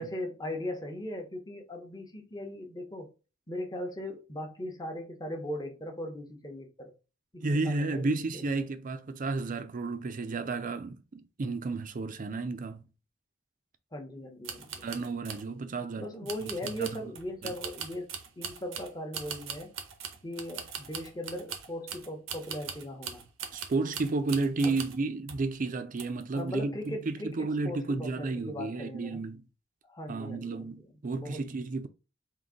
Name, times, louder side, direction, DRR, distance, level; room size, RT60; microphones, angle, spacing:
voice 1, 0.0-3.1 3.5-6.9 7.3-8.5 13.9-14.8 16.0-18.1 18.4-19.7 20.2-23.2 24.6-24.8 26.3-29.3 29.9-30.7 31.1-31.4, left 1 dB, 20° left, 0.9 m, -39 dB
voice 2, 7.4-12.8 14.8-16.1 16.8-16.9 17.4-17.5 23.5-29.4 30.1-31.9, right 3 dB, 45° right, 0.5 m, -32 dB
sound 1, 14.4-15.5 16.3-25.0 25.3-25.5 26.0-26.4 26.8-26.9, right 7 dB, 85° right, 0.8 m, -41 dB
3.8 x 2.6 x 3.7 m
head